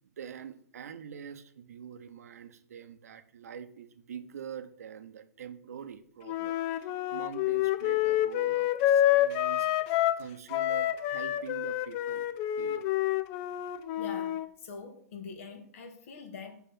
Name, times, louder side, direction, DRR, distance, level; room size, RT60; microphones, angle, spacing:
voice 1, 0.2-9.7 10.2-12.3 12.6-12.9, right 8 dB, 70° right, 10 dB, 0.9 m, -45 dB
Wind instrument woodwind instrument, 6.3-10.2 10.5-14.5, left 12 dB, 35° left, 0.6 m, -28 dB
voice 2, 14.0-16.7, left 5 dB, 55° left, 5 dB, 1.9 m, -44 dB
5.7 x 5.7 x 5.8 m, 0.62 s
hypercardioid pair, 130°, 9 cm